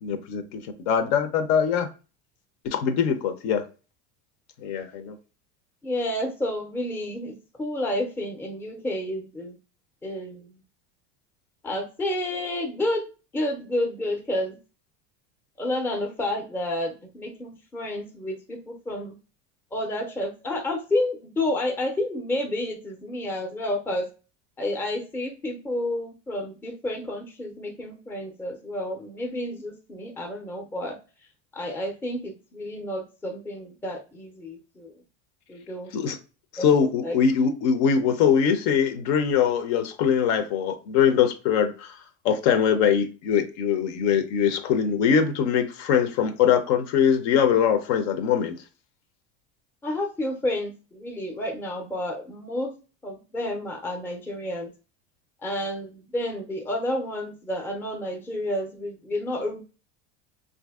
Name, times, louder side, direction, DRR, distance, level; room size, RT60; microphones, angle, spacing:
voice 1, 0.0-1.9 2.6-3.6 4.6-5.2 35.9-36.2 36.6-41.9 42.2-48.5, left 7 dB, 70° left, 0.6 m, -22 dB
voice 2, 5.8-9.6 10.0-10.6 11.6-13.1 13.3-14.6 15.6-19.1 19.7-24.1 24.6-31.0 31.5-34.9 35.5-35.9 36.6-36.8 37.0-37.1 49.8-52.7 53.0-54.7 55.4-59.6, left 1 dB, 5° left, 0.4 m, -30 dB
2.6 x 2.6 x 3.5 m
supercardioid pair, 140°, 34 cm